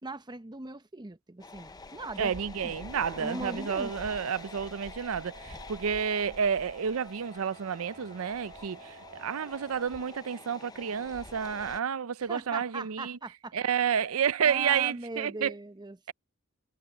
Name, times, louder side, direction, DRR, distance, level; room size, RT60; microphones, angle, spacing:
voice 1, 0.0-2.3 2.6-2.8 3.2-3.9 12.2-13.5 14.4-16.1, right 2 dB, 20° right, 0.8 m, -39 dB
sound 1, 1.4-11.8, left 3 dB, 20° left, 0.6 m, -47 dB
voice 2, 2.2-13.2 13.5-15.5, right 7 dB, 90° right, 0.5 m, -30 dB
sound 2, 2.5-9.9, right 3 dB, 40° right, 3.4 m, -51 dB
head